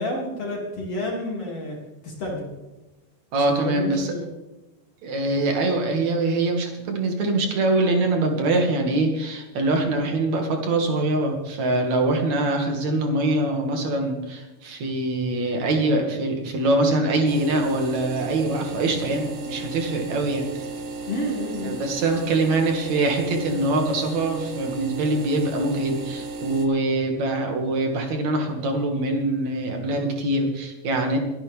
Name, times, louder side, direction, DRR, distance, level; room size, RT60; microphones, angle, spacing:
voice 1, 0.0-1.8 2.0-2.5 3.6-4.3 21.1-21.8, left 1 dB, 50° left, -2 dB, 3.7 m, -29 dB
voice 2, 3.3-4.1 5.0-20.6 21.6-31.2, right 2 dB, 60° right, 3 dB, 3.4 m, -23 dB
sound 1, 17.3-26.7, right 3 dB, 80° right, 2.8 m, -34 dB
23.0 x 10.0 x 3.6 m, 1.0 s
omnidirectional pair, 3.7 m